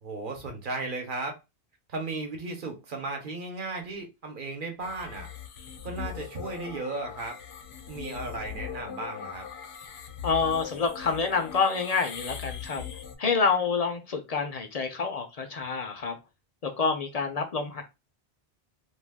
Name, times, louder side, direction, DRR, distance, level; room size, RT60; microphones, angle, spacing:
voice 1, 0.0-1.3 1.9-5.3 5.8-7.4 7.9-9.5, right 3 dB, 55° right, 0.9 m, -35 dB
sound 1, 4.8-13.2, left 8 dB, 90° left, 0.8 m, -40 dB
voice 2, 10.2-12.8 13.2-16.1 16.6-17.8, left 5 dB, 55° left, 0.4 m, -27 dB
2.3 x 2.2 x 3.3 m
omnidirectional pair, 1.1 m